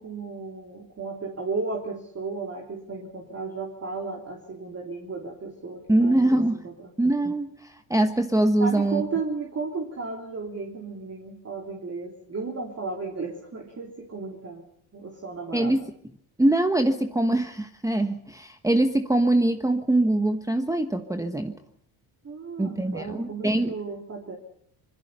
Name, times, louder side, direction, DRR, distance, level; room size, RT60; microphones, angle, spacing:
voice 1, 0.0-6.4 6.6-6.9 8.6-14.7 14.9-15.7 22.2-24.4, right 4 dB, 35° right, 0 dB, 3.3 m, -34 dB
voice 2, 5.9-6.7 7.0-9.0 15.5-15.9 16.4-21.6 22.6-23.7, right 1 dB, 5° right, 7 dB, 1.2 m, -23 dB
25.5 x 20.5 x 5.5 m, 0.66 s
supercardioid pair, 85°, 46 cm